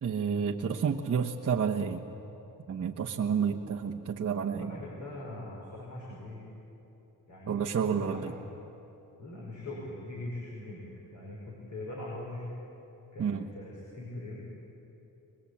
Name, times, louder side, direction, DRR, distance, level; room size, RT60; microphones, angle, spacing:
voice 1, 0.0-2.0 2.7-4.8 7.5-8.3 13.2-13.5, right 6 dB, 40° right, -3 dB, 1.1 m, -30 dB
voice 2, 4.6-6.4 7.3-8.2 9.2-10.8 11.1-12.5 13.1-14.5, left 1 dB, 50° left, -4 dB, 5.6 m, -41 dB
23.0 x 21.5 x 8.5 m, 3.0 s
cardioid pair, 115°, 37 cm